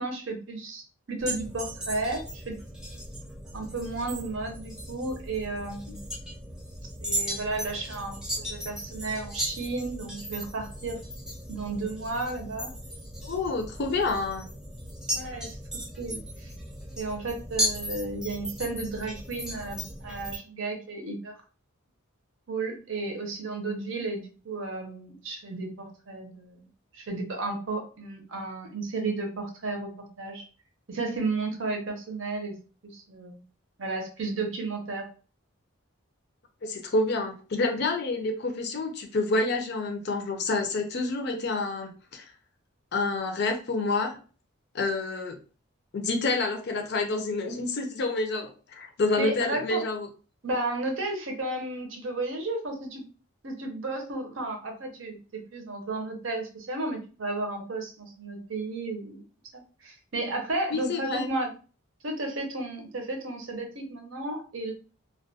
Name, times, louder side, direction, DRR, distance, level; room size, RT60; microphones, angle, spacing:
voice 1, 0.0-2.6 3.5-6.1 7.0-11.0 11.5-12.7 15.1-15.6 16.0-16.5 17.0-21.3 22.5-26.7 26.9-30.5 30.9-32.6 32.8-33.4 33.8-35.1 49.2-49.8 50.4-53.0 53.4-59.2 59.5-61.5 62.0-64.7, right 2 dB, 65° right, 4 dB, 0.7 m, -33 dB
sound 1, 1.2-20.4, equal, 5° right, 0.4 m, -36 dB
voice 2, 13.2-14.4 36.6-42.2 42.9-44.2 44.7-45.4 45.9-50.1 60.7-61.3, left 3 dB, 50° left, 4 dB, 0.4 m, -28 dB
2.2 x 2.2 x 2.7 m, 0.35 s
head